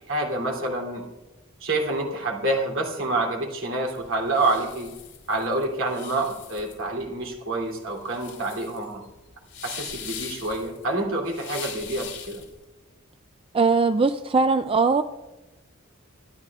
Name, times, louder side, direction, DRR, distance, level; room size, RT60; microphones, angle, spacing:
voice 1, 0.1-1.0 1.6-4.9 5.3-9.0 9.6-12.4, right 2 dB, 70° right, 0 dB, 2.9 m, -27 dB
sound 1, 3.9-12.6, left 8 dB, 60° left, 3.6 m, -41 dB
voice 2, 13.5-15.0, right 4 dB, 25° right, 9 dB, 0.4 m, -20 dB
25.5 x 11.0 x 2.4 m, 1.1 s
head